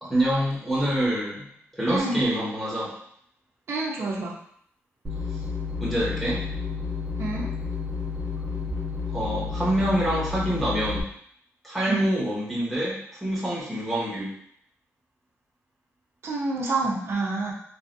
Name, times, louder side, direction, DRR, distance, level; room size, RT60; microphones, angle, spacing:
voice 1, 0.0-1.4 1.7-2.9 5.8-6.4 9.1-11.1 11.6-14.3, right 1 dB, ahead, -9 dB, 1.1 m, -26 dB
voice 2, 1.9-2.2 3.7-4.4 7.2-7.5 11.9-12.1 16.2-17.5, right 3 dB, 55° right, -2 dB, 0.7 m, -27 dB
sound 1, 5.0-11.0, left 5 dB, 25° right, 0.8 m, -31 dB
3.2 x 2.5 x 2.6 m, 0.65 s
wide cardioid pair, 155°, 5 cm